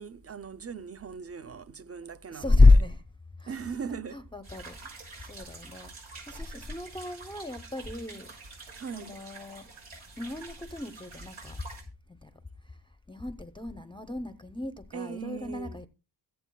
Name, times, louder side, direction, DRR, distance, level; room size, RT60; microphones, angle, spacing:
voice 1, 0.0-2.7 3.5-4.3 8.7-9.2 14.9-15.8, right 6 dB, 30° right, 0.6 m, -39 dB
voice 2, 2.3-3.0 3.4-3.6 4.1-5.9 6.3-8.3 8.9-9.7 10.2-11.6 12.1-12.3 12.6-12.8 13.1-15.9, left 3 dB, 10° left, 0.6 m, -27 dB
sound 1, 4.4-11.8, right 3 dB, 85° right, 6.0 m, -47 dB
23.0 x 8.1 x 2.2 m
wide cardioid pair, 145°, 48 cm